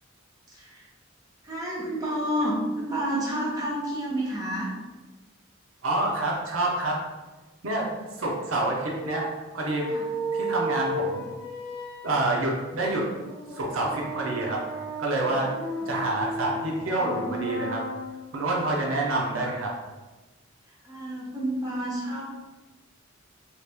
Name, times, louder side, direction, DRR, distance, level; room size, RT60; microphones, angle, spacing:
voice 1, 0.5-0.8 1.4-4.7 9.9-10.0 15.8-15.9 20.8-22.2, right 1 dB, 20° right, -6 dB, 0.7 m, -29 dB
voice 2, 5.8-7.0 7.6-7.9 8.2-9.9 10.3-11.3 12.0-13.1 13.5-14.6 15.0-15.5 15.9-17.8 18.3-19.7, right 2 dB, 85° right, -2 dB, 0.7 m, -27 dB
sound 1, 9.0-18.4, right 1 dB, 20° left, 0.7 m, -34 dB
2.9 x 2.4 x 3.4 m, 1.2 s
head